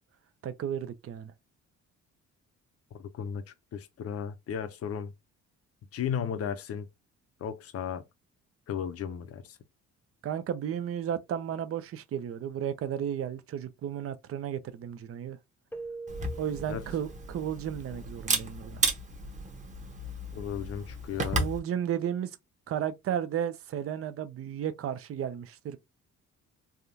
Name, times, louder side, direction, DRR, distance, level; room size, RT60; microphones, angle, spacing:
voice 1, 0.4-1.3 10.2-15.4 16.4-18.8 21.2-22.3 22.7-25.8, right 9 dB, 50° right, 0.5 m, -33 dB
voice 2, 2.9-3.4 3.7-5.1 5.9-6.9 7.4-8.0 8.7-9.4 16.7-16.8 20.3-21.5, left 8 dB, 50° left, 0.7 m, -35 dB
Keyboard (musical), 15.7-17.7, right 3 dB, 5° left, 0.5 m, -43 dB
Camera, 16.1-21.6, right 2 dB, 25° right, 1.0 m, -33 dB
3.5 x 2.3 x 2.6 m
cardioid pair, 90°, 30 cm